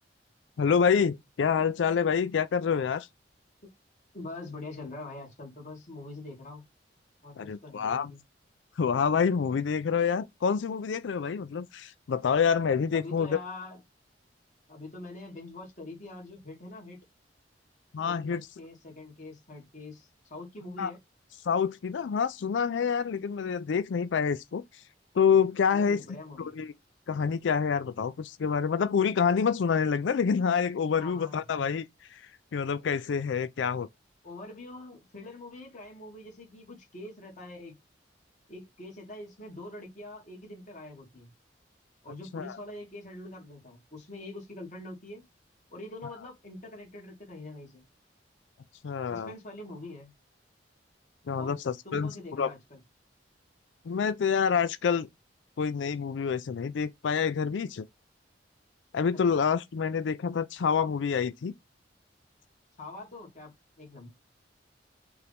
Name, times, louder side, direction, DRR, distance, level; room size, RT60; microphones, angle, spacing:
voice 1, 0.6-3.1 7.4-8.1 8.8-13.4 17.9-18.4 20.8-20.9 21.5-24.6 25.1-26.0 26.4-26.7 27.1-31.9 32.1-32.2 32.5-33.9 42.3-42.5 48.8-49.3 51.3-52.1 52.4-52.5 53.9-55.1 55.6-57.9 58.9-61.5, left 6 dB, 85° left, 0.4 m, -27 dB
voice 2, 4.1-6.7 7.2-8.2 12.9-13.8 14.7-17.0 18.1-21.0 25.7-26.6 30.9-31.6 34.2-37.7 38.5-41.3 42.0-45.2 45.7-47.8 49.1-50.1 51.4-51.6 51.8-52.8 59.3-59.4 62.8-64.1, left 2 dB, 45° left, 1.9 m, -44 dB
4.5 x 2.6 x 3.4 m
head